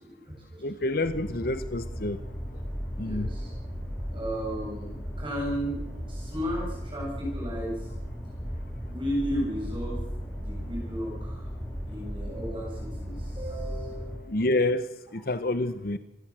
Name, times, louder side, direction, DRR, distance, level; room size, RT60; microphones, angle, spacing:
voice 1, 0.0-0.6 3.0-3.5 4.1-5.8 6.1-7.9 8.9-10.0 10.3-11.4 11.9-14.4, equal, 30° right, -3 dB, 7.8 m, -34 dB
voice 2, 0.6-2.2 3.0-3.3 14.3-14.8 15.1-16.0, left 2 dB, 55° left, 12 dB, 0.9 m, -28 dB
sound 1, 1.0-14.2, equal, 10° left, 6.3 m, -36 dB
26.0 x 18.0 x 7.5 m, 0.96 s
head